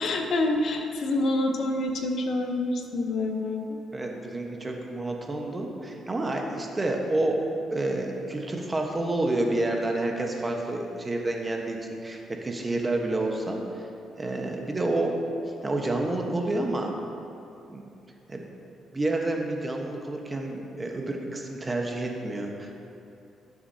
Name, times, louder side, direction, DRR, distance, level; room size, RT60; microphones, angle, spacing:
voice 1, 0.0-3.8, left 2 dB, 60° left, 3 dB, 0.9 m, -27 dB
voice 2, 3.9-7.4 7.7-13.9 14.2-15.1 15.6-16.9 17.7-17.8 18.3-18.5 18.9-22.8, right 2 dB, 20° right, 1 dB, 1.2 m, -29 dB
16.0 x 6.8 x 2.8 m, 2.7 s
cardioid pair, 90°, 0 cm